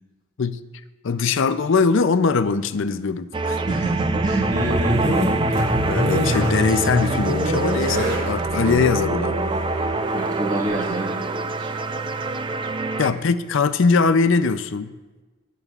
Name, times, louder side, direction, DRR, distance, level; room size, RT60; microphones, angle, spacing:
voice 1, 1.0-3.6 5.9-9.4 13.0-14.9, left 4 dB, 65° left, 12 dB, 0.5 m, -21 dB
sound 1, 3.3-13.1, right 3 dB, 25° right, 0.4 m, -26 dB
voice 2, 3.7-5.4 10.1-11.2 11.6-11.7, right 2 dB, 40° right, -6 dB, 1.7 m, -26 dB
sound 2, 3.7-11.4, equal, 60° right, 3.7 m, -26 dB
19.5 x 8.3 x 2.4 m, 1.2 s
head